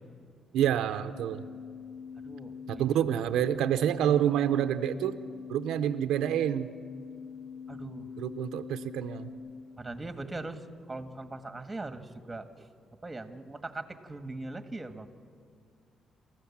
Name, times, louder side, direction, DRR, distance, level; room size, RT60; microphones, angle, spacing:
voice 1, 0.5-1.4 2.7-5.2 5.5-6.7 8.2-9.3, right 10 dB, 85° right, 9 dB, 0.7 m, -28 dB
sound 1, 1.1-9.3, left 6 dB, 75° left, 5.7 m, -44 dB
voice 2, 2.2-2.8 7.7-8.1 9.8-12.7 13.0-15.1, right 2 dB, 15° right, 8 dB, 1.6 m, -40 dB
27.5 x 14.5 x 7.3 m, 2.2 s
cardioid pair, 90°, 0 cm